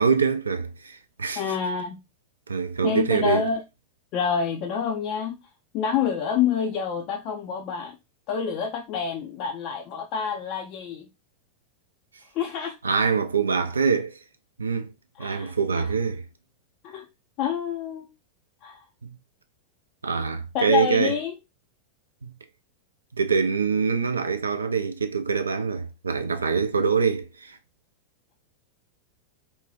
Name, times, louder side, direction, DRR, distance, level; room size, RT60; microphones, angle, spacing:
voice 1, 0.0-1.6 2.5-3.5 12.8-14.2 14.6-14.9 15.2-16.2 19.0-19.2 20.0-21.2 22.2-22.3 23.1-27.6, right 5 dB, 75° right, 0.3 m, -24 dB
voice 2, 1.4-2.0 2.8-3.6 4.1-5.4 5.7-7.9 8.3-11.1 12.3-12.7 15.2-15.5 16.8-17.1 17.4-18.1 18.6-18.8 20.5-21.3, left 7 dB, 40° left, 0.4 m, -27 dB
2.6 x 2.1 x 3.2 m
figure-of-eight pair, 90°, 0 cm